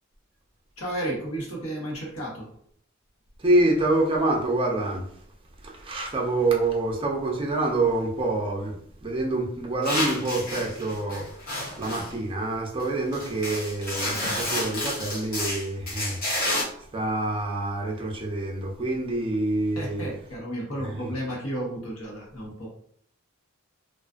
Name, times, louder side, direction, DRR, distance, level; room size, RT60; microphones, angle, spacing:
voice 1, 0.8-2.5 19.8-22.7, right 1 dB, 85° left, -3 dB, 1.0 m, -32 dB
voice 2, 3.4-5.1 5.6-16.3 16.9-20.1 20.7-21.1, right 2 dB, 25° right, -1 dB, 0.5 m, -26 dB
sound 1, 9.8-12.1 12.8-12.9 13.1-16.6, left 1 dB, 45° left, 0.8 m, -30 dB
2.4 x 2.3 x 2.4 m, 0.65 s
head